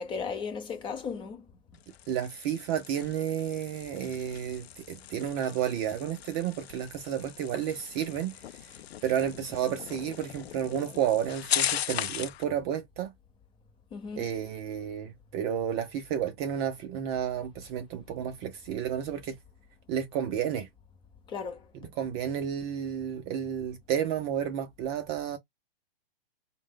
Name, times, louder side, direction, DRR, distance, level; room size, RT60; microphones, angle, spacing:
voice 1, 0.0-1.4 13.9-14.3 21.3-21.7, left 5 dB, 15° left, 0.6 m, -36 dB
sound 1, 1.7-12.4, left 11 dB, 85° left, 0.5 m, -38 dB
voice 2, 2.1-8.3 9.0-13.1 14.2-19.4 19.9-20.7 21.7-25.4, right 9 dB, 25° right, 0.4 m, -31 dB
4.5 x 2.1 x 3.7 m
hypercardioid pair, 135°, 31 cm